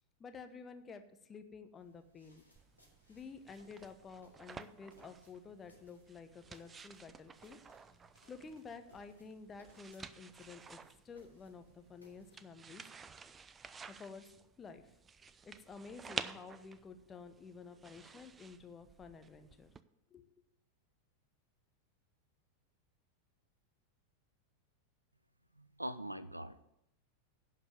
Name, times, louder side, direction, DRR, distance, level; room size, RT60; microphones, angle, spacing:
voice 1, 0.2-2.4 3.1-7.6 8.3-12.8 13.9-14.9 15.4-19.7 20.1-20.3, left 5 dB, 20° left, 8 dB, 1.0 m, -51 dB
sound 1, 1.8-12.4, left 1 dB, 90° left, 3.4 m, -68 dB
sound 2, 2.6-19.8, right 5 dB, 20° right, 0.5 m, -52 dB
voice 2, 25.6-26.6, right 1 dB, 85° right, 14 dB, 0.5 m, -43 dB
11.0 x 5.3 x 7.9 m, 0.82 s
figure-of-eight pair, 90°, 0 cm